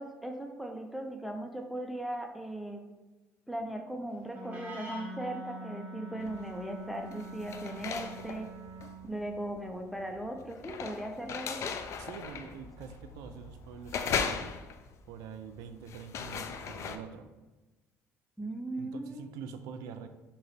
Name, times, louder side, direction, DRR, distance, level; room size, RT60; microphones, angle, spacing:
voice 1, 0.0-2.8 3.5-8.5 9.0-11.7 18.4-19.3, right 1 dB, ahead, 3 dB, 0.5 m, -38 dB
Wind instrument woodwind instrument, 4.3-9.1, equal, 25° right, 1.1 m, -44 dB
sound 1, 6.2-6.6 7.0-17.0, left 6 dB, 55° left, 0.4 m, -38 dB
voice 2, 12.0-14.5 15.1-17.3 18.8-20.1, right 7 dB, 85° right, 9 dB, 0.4 m, -45 dB
5.3 x 2.8 x 3.2 m, 1.1 s
cardioid pair, 110°, 6 cm